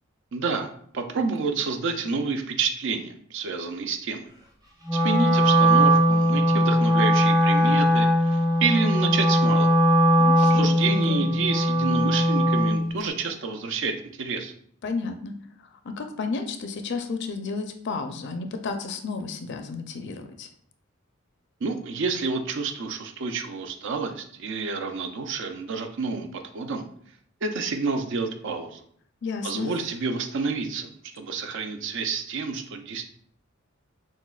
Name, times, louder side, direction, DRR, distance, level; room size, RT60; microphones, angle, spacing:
voice 1, 0.3-4.3 4.9-9.8 10.5-14.5 21.6-26.9 27.4-28.8 29.4-33.1, right 4 dB, 65° right, 5 dB, 0.5 m, -29 dB
Wind instrument woodwind instrument, 4.8-12.9, equal, 20° right, 0.7 m, -20 dB
voice 2, 10.2-11.3 14.8-15.3 15.8-20.5 29.2-29.7, left 4 dB, 60° left, 6 dB, 0.4 m, -32 dB
6.1 x 2.1 x 2.3 m, 0.62 s
head